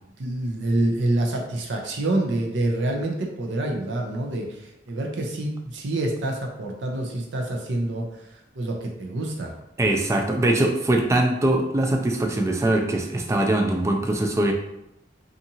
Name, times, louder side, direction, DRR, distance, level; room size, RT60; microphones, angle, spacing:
voice 1, 0.2-8.0 8.3-9.5, right 1 dB, 75° right, 1 dB, 0.5 m, -27 dB
voice 2, 9.8-14.5, right 1 dB, 15° right, 3 dB, 0.3 m, -22 dB
2.7 x 2.4 x 2.7 m, 0.85 s
head